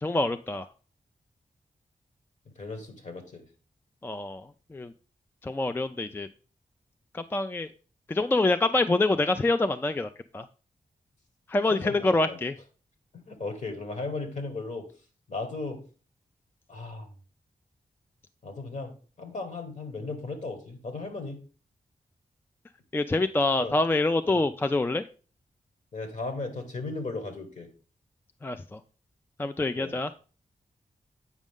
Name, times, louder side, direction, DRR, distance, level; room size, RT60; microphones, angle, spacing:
voice 1, 0.0-0.7 4.0-4.9 5.4-6.3 7.1-7.7 8.1-10.5 11.5-12.5 22.9-25.1 28.4-28.8 29.4-30.1, left 2 dB, 15° left, 10 dB, 0.3 m, -26 dB
voice 2, 2.6-3.5 11.7-12.4 13.3-14.9 15.3-15.8 16.7-17.1 18.4-21.4 23.6-23.7 24.2-24.4 25.9-27.7 29.7-30.0, left 3 dB, 55° left, 6 dB, 1.7 m, -36 dB
8.2 x 5.2 x 3.6 m, 0.38 s
wide cardioid pair, 80°, 15 cm